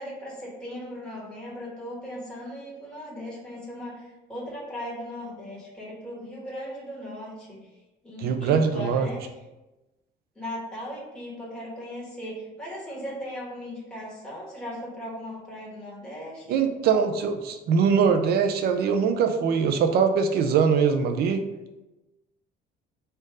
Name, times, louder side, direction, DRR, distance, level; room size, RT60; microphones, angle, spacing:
voice 1, 0.0-7.7 8.0-9.3 10.3-16.5, equal, 5° left, -7 dB, 1.5 m, -38 dB
voice 2, 8.2-9.1 16.5-21.4, right 6 dB, 60° right, 7 dB, 0.6 m, -22 dB
4.4 x 2.6 x 4.7 m, 1.0 s
cardioid pair, 140°, 18 cm